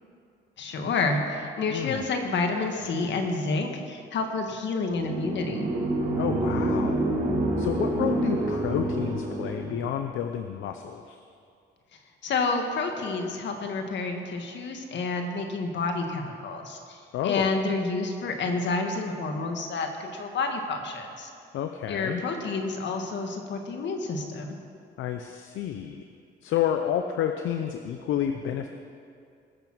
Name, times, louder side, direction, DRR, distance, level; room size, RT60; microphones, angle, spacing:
voice 1, 0.6-5.7 12.2-21.3 21.9-24.6, left 3 dB, 65° left, 4 dB, 1.8 m, -29 dB
voice 2, 1.7-2.0 6.2-7.0 7.6-11.2 17.1-17.5 21.5-22.2 25.0-26.0 26.4-28.7, left 10 dB, 80° left, 6 dB, 0.7 m, -30 dB
sound 1, 4.9-9.8, right 1 dB, 50° right, 3.6 m, -27 dB
20.5 x 7.0 x 6.1 m, 2.4 s
cardioid pair, 90°, 20 cm